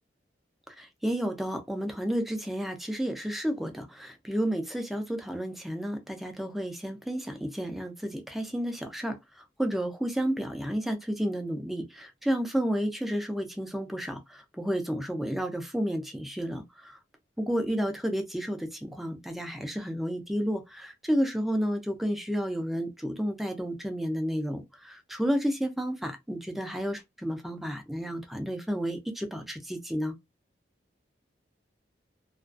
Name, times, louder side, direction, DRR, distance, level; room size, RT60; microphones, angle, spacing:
voice 1, 0.8-9.2 9.6-17.0 17.4-30.1, equal, ahead, 0.3 m, -31 dB
2.3 x 2.2 x 2.3 m
head